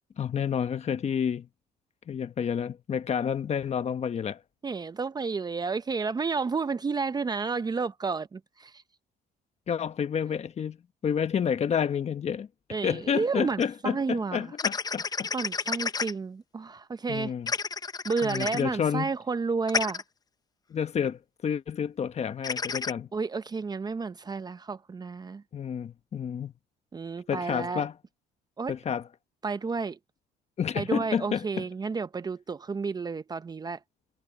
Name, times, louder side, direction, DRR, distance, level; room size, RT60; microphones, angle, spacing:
voice 1, 0.2-1.5 2.1-4.4 9.7-10.8 11.0-12.5 12.8-15.3 17.1-17.5 18.2-19.1 20.7-23.1 25.5-26.5 27.3-27.9 28.7-29.0 30.6-31.6, left 7 dB, 40° left, 1.3 m, -29 dB
voice 2, 4.6-8.8 12.7-14.5 15.3-17.3 18.0-20.0 23.1-25.4 26.9-27.9 28.6-28.7 29.4-30.0 30.8-33.8, right 4 dB, 25° right, 0.7 m, -31 dB
sound 1, 13.6-13.7 14.6-16.1 17.5-18.6 19.7-20.0 22.4-22.9, left 5 dB, 20° left, 0.7 m, -30 dB
cardioid pair, 110°, 17 cm